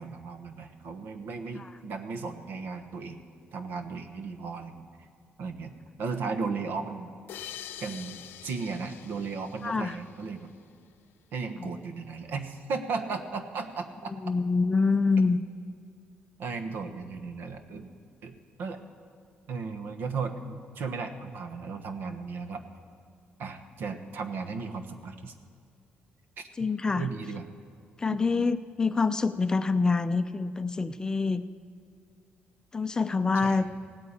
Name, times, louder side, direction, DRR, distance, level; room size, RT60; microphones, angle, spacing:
voice 1, 0.0-3.2 3.5-4.8 5.4-5.7 6.0-7.1 7.8-10.5 11.3-14.1 16.4-17.9 18.2-18.8 19.5-22.6 23.4-25.3 26.4-26.5 26.9-27.5 28.1-28.5 33.4-33.6, right 4 dB, 75° right, 7 dB, 1.2 m, -35 dB
sound 1, 7.3-10.6, left 11 dB, 80° left, 0.6 m, -45 dB
voice 2, 9.6-10.0 11.6-11.7 14.1-15.4 26.6-27.1 28.0-31.4 32.7-33.7, left 4 dB, 20° left, 11 dB, 0.4 m, -26 dB
17.0 x 9.3 x 8.6 m, 2.3 s
cardioid pair, 140°, 4 cm